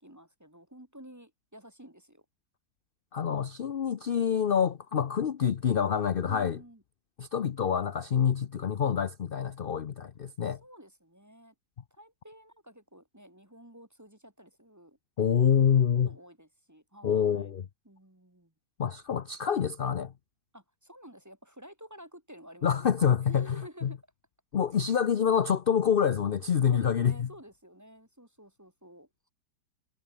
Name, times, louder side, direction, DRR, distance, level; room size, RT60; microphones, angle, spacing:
voice 1, 0.0-2.2 6.3-6.8 10.4-11.5 11.9-15.0 16.1-17.5 17.8-18.5 20.5-22.9 23.2-24.0 26.7-29.1, equal, 10° right, 1.4 m, -51 dB
voice 2, 3.1-6.6 7.2-10.6 15.2-16.1 17.0-17.7 18.8-20.1 22.6-23.9 24.5-27.3, left 8 dB, 55° left, 0.6 m, -26 dB
omnidirectional pair, 1.9 m